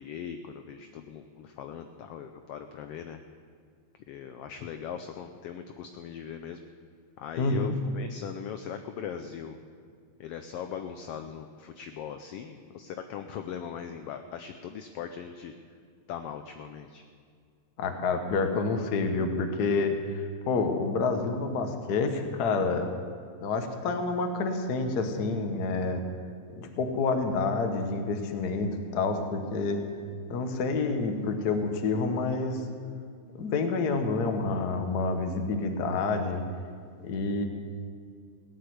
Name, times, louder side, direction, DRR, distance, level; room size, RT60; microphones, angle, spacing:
voice 1, 0.0-3.2 4.1-6.6 7.2-9.6 10.2-15.5 16.1-17.0, left 8 dB, 80° left, 7 dB, 1.4 m, -40 dB
voice 2, 7.4-7.7 17.8-22.9 23.4-26.0 26.6-29.8 30.3-32.6 33.4-36.4 37.0-37.5, left 3 dB, 55° left, 6 dB, 1.1 m, -28 dB
17.5 x 6.6 x 9.4 m, 2.1 s
omnidirectional pair, 3.3 m